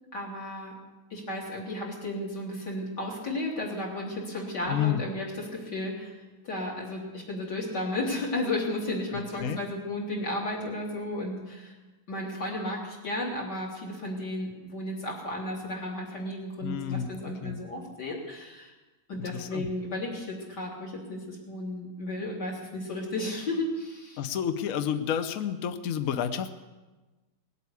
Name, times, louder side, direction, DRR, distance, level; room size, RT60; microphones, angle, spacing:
voice 1, 0.1-0.8 1.1-11.7 12.1-18.7 19.1-24.2, left 1 dB, 50° left, -3 dB, 4.0 m, -34 dB
voice 2, 4.7-5.0 9.1-9.6 16.6-17.1 17.4-17.6 19.2-19.7 24.2-26.5, left 9 dB, 70° left, 9 dB, 0.8 m, -30 dB
19.5 x 8.3 x 8.3 m, 1.2 s
omnidirectional pair, 2.4 m